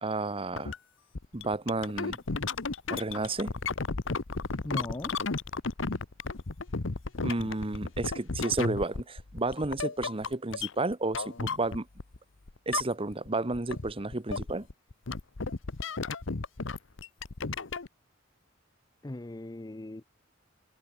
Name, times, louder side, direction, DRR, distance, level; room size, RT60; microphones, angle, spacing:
voice 1, 0.0-0.7 1.3-2.2 2.9-3.5 7.2-11.9 12.7-14.7, right 2 dB, 30° right, 1.1 m, -31 dB
sound 1, 0.6-0.8 1.1-12.2 12.5-13.3 13.5-17.9, left 4 dB, 70° left, 1.0 m, -34 dB
voice 2, 4.6-5.1 19.0-20.0, left 1 dB, 20° left, 0.6 m, -38 dB
head